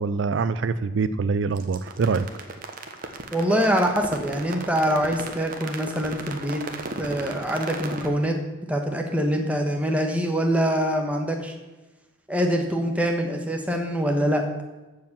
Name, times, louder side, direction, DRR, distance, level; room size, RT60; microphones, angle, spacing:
voice 1, 0.0-2.3, right 4 dB, 60° right, 13 dB, 0.4 m, -24 dB
sound 1, 1.6-8.1, right 3 dB, 45° right, 1.1 m, -35 dB
voice 2, 3.3-6.6 7.0-8.4 8.7-11.5 12.3-14.4, equal, 5° right, 2 dB, 1.2 m, -24 dB
14.5 x 4.9 x 7.2 m, 1.1 s
head